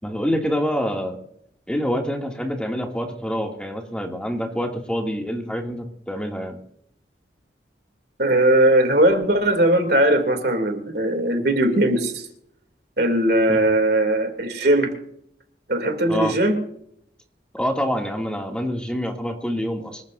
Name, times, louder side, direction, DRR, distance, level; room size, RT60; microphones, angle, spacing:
voice 1, 0.0-1.2 1.7-6.6 13.5-13.6 16.1-16.3 17.5-20.0, equal, 5° left, 2.4 m, -26 dB
voice 2, 8.2-12.3 13.0-14.9 15.7-16.6, right 1 dB, 60° right, 2.9 m, -19 dB
25.5 x 14.0 x 2.7 m
head